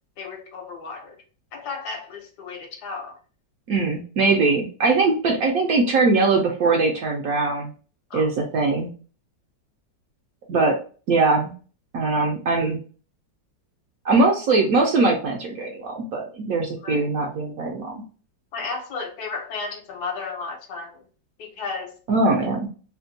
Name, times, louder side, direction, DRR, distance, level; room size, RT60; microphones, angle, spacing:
voice 1, 0.2-1.2 1.5-3.2 8.1-8.3 16.8-17.1 18.5-21.0 21.4-22.0, left 4 dB, 70° left, 1.4 m, -33 dB
voice 2, 3.7-7.7 8.1-8.9 10.5-10.7 11.1-11.5 11.9-12.8 14.0-18.0 22.1-22.6, right 3 dB, 65° right, 0.9 m, -21 dB
3.4 x 2.2 x 2.6 m
omnidirectional pair, 2.0 m